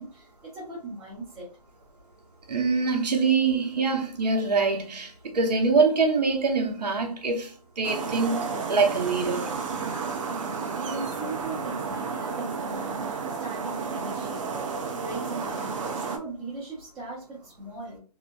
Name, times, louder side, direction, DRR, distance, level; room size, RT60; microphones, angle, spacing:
voice 1, 0.0-1.5 10.3-14.7 15.0-18.0, right 2 dB, 15° right, 1.1 m, -39 dB
voice 2, 2.5-9.6, right 4 dB, 80° right, 0.9 m, -24 dB
sound 1, 7.8-16.2, right 5 dB, 50° right, 0.6 m, -32 dB
2.8 x 2.5 x 2.2 m
hypercardioid pair, 145°, 21 cm